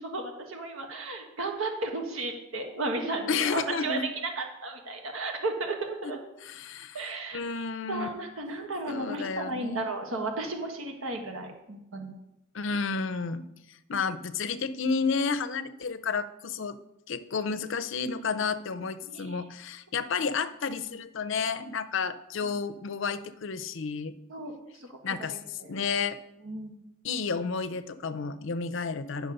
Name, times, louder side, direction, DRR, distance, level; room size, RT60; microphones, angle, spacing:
voice 1, 0.0-4.0 4.4-6.2 6.9-7.4 7.9-12.1 19.0-19.4 24.3-24.9 25.2-25.8 26.4-26.8, right 2 dB, 75° right, 3 dB, 1.4 m, -34 dB
voice 2, 3.3-4.0 6.4-7.1 7.3-8.1 8.9-9.9 12.5-13.5 13.9-16.8 17.1-24.1 25.0-26.2 27.0-29.3, left 5 dB, 60° left, 13 dB, 0.6 m, -31 dB
10.0 x 6.2 x 5.3 m, 0.87 s
head